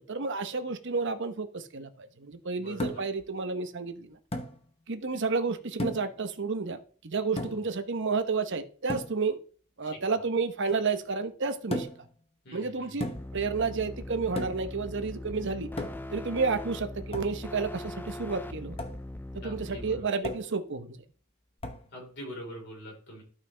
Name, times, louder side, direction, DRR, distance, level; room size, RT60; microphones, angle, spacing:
voice 1, 0.1-4.2 4.9-9.4 9.8-11.9 12.5-13.1 13.3-15.7 16.1-18.8 19.3-21.0, right 4 dB, 55° right, 8 dB, 0.9 m, -31 dB
voice 2, 2.6-3.0 7.4-7.7 12.4-13.2 19.4-20.1 21.9-23.2, equal, 55° left, -1 dB, 4.1 m, -44 dB
sound 1, 2.8-3.2 4.3-4.6 5.8-6.2 7.4-7.7 8.9-9.2 11.7-12.1 13.0-13.4 14.4-14.7 15.8-16.2 17.1-17.4 18.8-19.0 20.2-20.6 21.6-21.9, left 1 dB, 25° left, 0.9 m, -35 dB
sound 2, 13.1-20.0, left 1 dB, 10° left, 0.3 m, -40 dB
12.0 x 5.8 x 3.3 m, 0.43 s
head